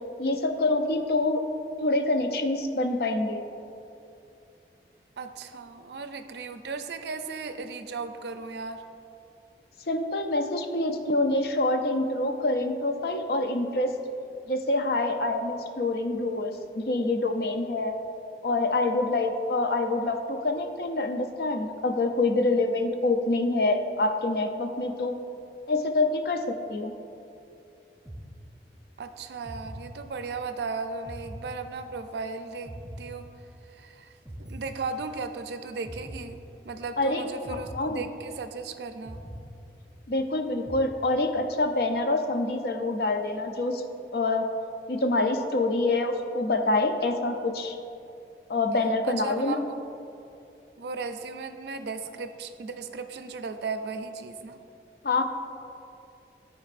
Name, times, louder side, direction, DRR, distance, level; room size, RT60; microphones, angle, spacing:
voice 1, 0.2-1.4 1.8-3.4 9.9-13.9 14.5-17.9 18.4-25.2 25.7-26.9 37.0-37.2 37.5-38.0 40.1-43.8 44.1-44.4 44.9-47.8 48.5-49.6 55.0-55.2, left 2 dB, 60° left, 6 dB, 0.5 m, -26 dB
voice 2, 5.2-8.8 29.0-33.3 33.7-34.1 34.4-39.2 49.0-49.8 50.8-54.6, right 4 dB, 70° right, 8 dB, 0.4 m, -36 dB
sound 1, 28.1-28.9 29.4-30.5 31.1-32.2 32.7-33.8 34.3-35.4 35.8-36.9 37.4-38.6 39.1-40.2 40.7-41.5, equal, 5° right, 0.4 m, -43 dB
12.5 x 4.5 x 2.5 m, 2.6 s
head